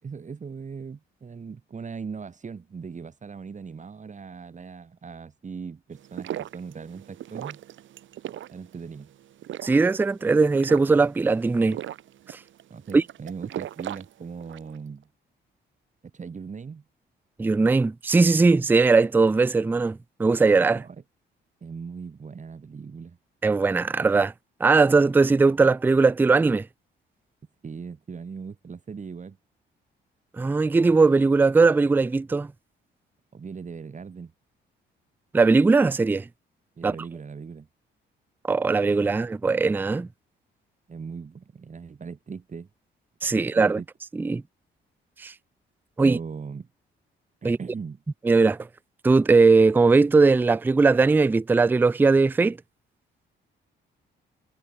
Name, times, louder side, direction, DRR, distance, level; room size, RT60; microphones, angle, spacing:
voice 1, 0.0-7.6 8.5-9.1 12.7-15.1 16.1-16.8 20.7-21.0 21.6-23.2 27.6-29.4 33.3-34.3 36.8-37.7 40.9-42.7 43.4-43.5 43.8-43.9 46.0-46.7 47.4-48.0, right 5 dB, 40° right, 5.2 m, -39 dB
sound 1, 5.9-14.8, right 12 dB, 75° right, 4.6 m, -39 dB
voice 2, 9.6-11.8 12.9-13.0 17.4-20.8 23.4-24.3 24.6-26.7 30.4-32.5 35.3-36.2 36.8-36.9 38.5-40.1 43.2-43.8 44.2-44.4 45.2-45.3 46.0-46.2 47.4-47.6 48.2-48.6 49.0-52.6, right 4 dB, 10° right, 0.3 m, -19 dB
cardioid pair, 90°, 20 cm